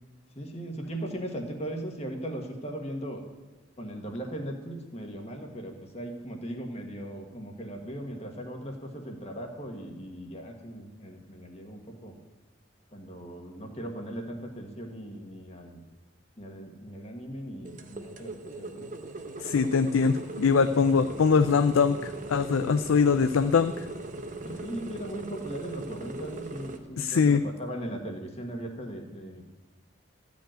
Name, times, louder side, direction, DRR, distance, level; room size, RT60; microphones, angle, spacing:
voice 1, 0.4-3.2 3.8-12.1 12.9-15.8 16.4-18.3 18.6-18.8 24.4-29.4, right 1 dB, 30° left, 3 dB, 1.5 m, -38 dB
sound 1, 17.6-26.8, right 2 dB, 40° right, 0.9 m, -39 dB
voice 2, 19.4-23.9 27.0-27.4, left 5 dB, 85° left, 9 dB, 0.4 m, -23 dB
14.0 x 5.3 x 8.9 m, 1.2 s
head